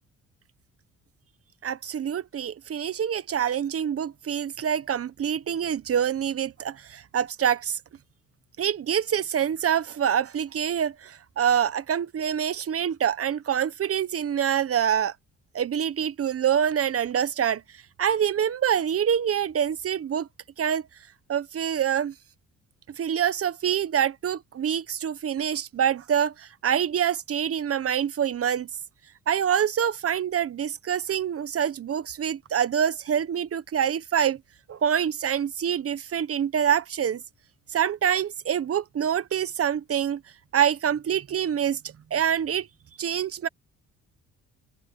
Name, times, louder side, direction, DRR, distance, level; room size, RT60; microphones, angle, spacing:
voice 1, 1.6-7.8 8.6-15.1 15.5-17.6 18.0-20.3 20.6-20.9 21.3-22.1 23.0-28.7 29.3-34.4 34.7-37.2 37.7-40.2 40.5-41.8 42.1-42.7 43.0-43.5, right 9 dB, 50° right, 1.2 m, -26 dB
cardioid pair, 90°, 30 cm